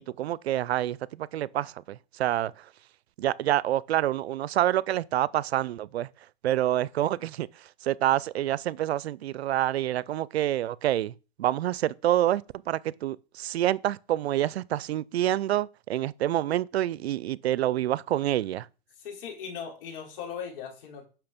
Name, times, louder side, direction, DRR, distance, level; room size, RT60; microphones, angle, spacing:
voice 1, 0.0-2.5 3.2-6.1 6.4-7.5 7.8-11.1 11.4-18.7, right 13 dB, 85° right, 0.6 m, -27 dB
voice 2, 19.0-21.1, left 7 dB, 60° left, 4.2 m, -39 dB
10.5 x 6.2 x 5.2 m
hypercardioid pair, 140°, 31 cm